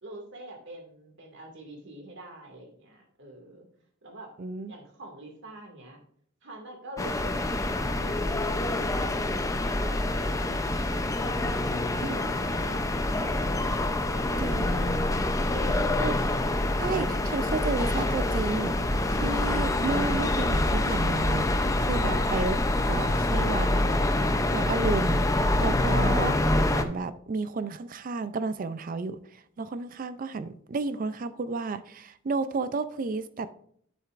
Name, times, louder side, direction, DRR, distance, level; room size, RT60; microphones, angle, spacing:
voice 1, 0.0-3.7 4.0-4.3 4.7-6.0 6.4-13.3 14.1-16.1, right 1 dB, 60° right, 2.1 m, -45 dB
voice 2, 4.4-4.7 12.0-12.3 14.4-14.7 16.0-16.1 16.8-22.6 22.9-23.7 24.5-25.2 25.6-26.4 26.7-29.2 29.6-33.5, right 3 dB, 40° right, 0.4 m, -32 dB
sound 1, 7.0-26.8, left 1 dB, 15° left, 0.5 m, -26 dB
9.7 x 7.7 x 2.5 m
head